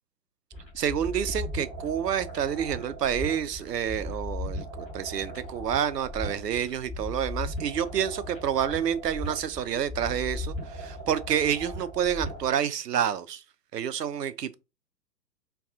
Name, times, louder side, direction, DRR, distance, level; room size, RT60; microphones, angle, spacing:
sound 1, 0.5-12.5, left 1 dB, 5° left, 1.0 m, -37 dB
voice 1, 0.7-13.4 13.7-14.6, right 9 dB, 75° right, 0.5 m, -28 dB
2.6 x 2.3 x 3.5 m
figure-of-eight pair, 125°, 49 cm